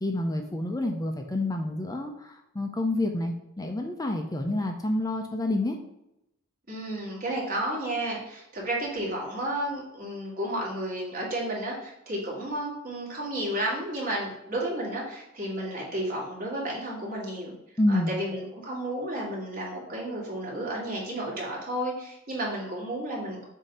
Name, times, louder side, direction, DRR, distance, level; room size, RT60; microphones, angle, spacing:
voice 1, 0.0-5.8 17.8-18.1, left 1 dB, 15° left, 3 dB, 0.5 m, -28 dB
voice 2, 6.7-17.5 17.9-23.5, right 1 dB, 45° right, -4 dB, 2.4 m, -32 dB
7.2 x 2.8 x 5.4 m, 0.85 s
head